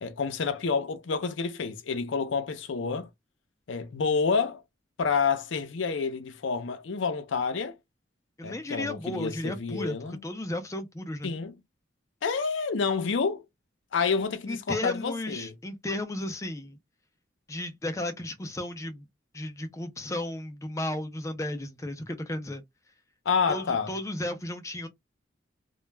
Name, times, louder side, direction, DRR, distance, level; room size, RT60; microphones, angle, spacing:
voice 1, 0.0-3.1 3.7-4.6 5.0-7.8 8.4-10.2 11.2-11.5 12.2-13.4 13.9-15.5 23.3-23.9, left 5 dB, 90° left, 0.5 m, -28 dB
voice 2, 8.4-11.3 14.5-16.8 17.5-19.1 19.3-22.6 23.5-24.9, left 1 dB, 15° left, 0.4 m, -34 dB
2.3 x 2.0 x 3.2 m
head